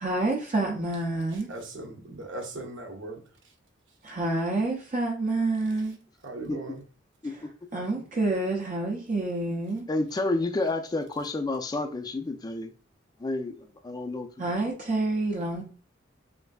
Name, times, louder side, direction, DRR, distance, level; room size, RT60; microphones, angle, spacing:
voice 1, 0.0-1.5 4.0-6.0 7.7-9.9 14.4-15.6, right 2 dB, 40° right, 0.5 m, -28 dB
voice 2, 1.5-3.2 6.2-6.8, right 2 dB, 70° right, 0.7 m, -38 dB
voice 3, 9.9-12.7 13.2-14.3, left 2 dB, 20° left, 0.3 m, -30 dB
3.3 x 2.5 x 2.2 m
head